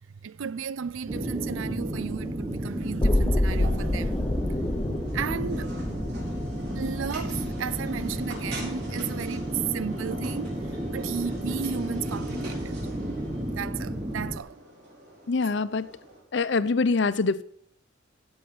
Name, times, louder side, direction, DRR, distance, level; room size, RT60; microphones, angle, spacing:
voice 1, 0.2-4.7 5.1-5.8 6.7-10.6 10.9-12.8 13.5-14.6, right 7 dB, 85° right, 0.4 m, -34 dB
sound 1, 1.1-14.4, right 1 dB, 25° right, 1.1 m, -33 dB
sound 2, 3.0-9.0 9.3-9.4, left 1 dB, 20° left, 0.6 m, -28 dB
sound 3, 3.6-16.2, right 1 dB, 55° right, 4.7 m, -44 dB
voice 2, 15.3-15.9 16.3-17.4, left 4 dB, 60° left, 0.6 m, -24 dB
16.5 x 7.3 x 5.8 m
head